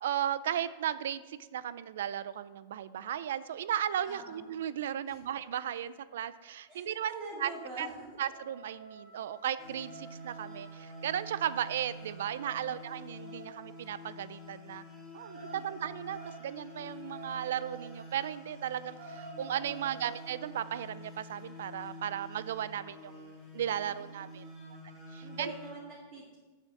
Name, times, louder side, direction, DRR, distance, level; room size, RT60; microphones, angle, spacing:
voice 1, 0.0-7.1 7.4-7.5 7.8-7.9 8.2-14.8 15.1-24.4 25.1-25.5, right 10 dB, 70° right, 16 dB, 0.4 m, -35 dB
voice 2, 4.1-4.4 5.1-5.2 6.7-8.2 12.4-12.8 15.5-15.6 19.7-20.1 23.8-24.8 25.2-26.4, right 2 dB, 30° right, -3 dB, 1.5 m, -45 dB
sound 1, 5.9-6.0 6.3-6.6 7.0-13.9 15.2-18.0 18.4-18.5 18.8-20.2, right 5 dB, 50° right, 1.8 m, -51 dB
sound 2, 9.6-25.7, equal, ahead, 1.7 m, -48 dB
7.2 x 6.6 x 6.5 m, 1.3 s
supercardioid pair, 180°, 0 cm